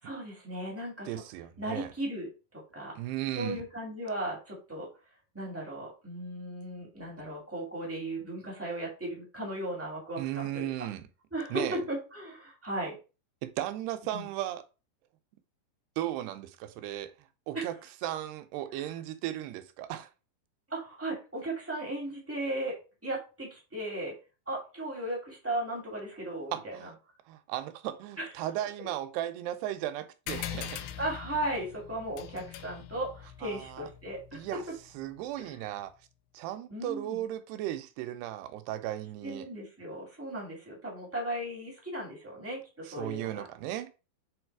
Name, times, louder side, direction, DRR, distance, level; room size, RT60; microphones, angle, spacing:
voice 1, 0.0-1.2 1.6-2.3 2.7-3.0 3.3-4.9 5.3-10.9 11.3-13.0 14.1-14.3 17.5-17.7 18.7-18.9 20.7-22.8 23.0-24.1 24.4-26.9 28.2-28.3 30.6-34.4 35.4-35.6 36.7-37.2 39.2-43.5, right 1 dB, 15° right, 0.5 m, -36 dB
voice 2, 1.1-1.9 3.0-3.6 10.2-11.1 11.5-11.8 13.4-14.6 16.0-17.1 17.5-17.7 18.0-20.1 26.5-27.0 27.3-30.8 33.4-33.9 34.3-34.6 34.9-35.9 36.3-39.5 42.9-43.9, right 13 dB, 80° right, 2.5 m, -36 dB
sound 1, 30.3-35.2, left 11 dB, 90° left, 2.2 m, -42 dB
7.9 x 3.5 x 4.6 m
omnidirectional pair, 5.1 m